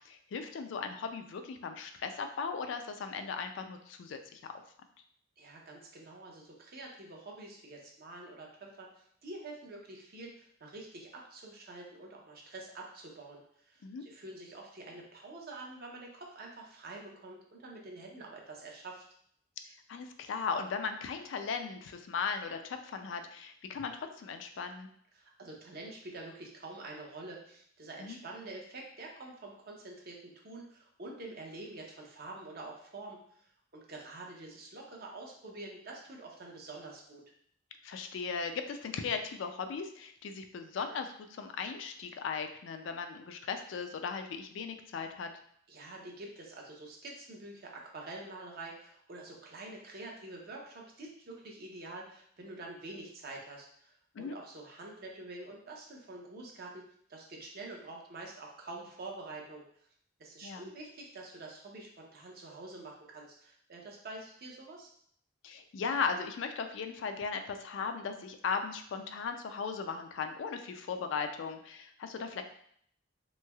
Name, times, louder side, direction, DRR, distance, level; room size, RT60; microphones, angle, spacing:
voice 1, 0.1-4.4 13.8-14.0 19.9-24.9 28.0-28.2 37.8-45.3 54.1-54.3 60.4-60.7 65.4-72.4, left 5 dB, 70° left, 6 dB, 0.3 m, -37 dB
voice 2, 5.4-13.4 13.7-19.0 25.1-37.2 45.7-56.8 57.1-59.7 60.2-64.9, right 2 dB, 55° right, 0 dB, 0.7 m, -47 dB
3.1 x 3.0 x 2.3 m, 0.64 s
head